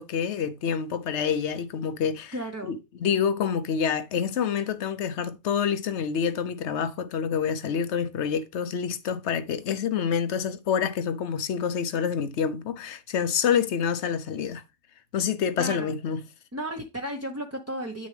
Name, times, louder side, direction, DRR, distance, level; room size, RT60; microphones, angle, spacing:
voice 1, 0.0-2.3 2.7-14.6 15.1-16.2, left 7 dB, 65° left, 1.1 m, -27 dB
voice 2, 2.3-2.7 15.6-15.9 16.5-18.1, right 1 dB, 15° right, 0.8 m, -34 dB
8.8 x 6.6 x 3.3 m
omnidirectional pair, 1.3 m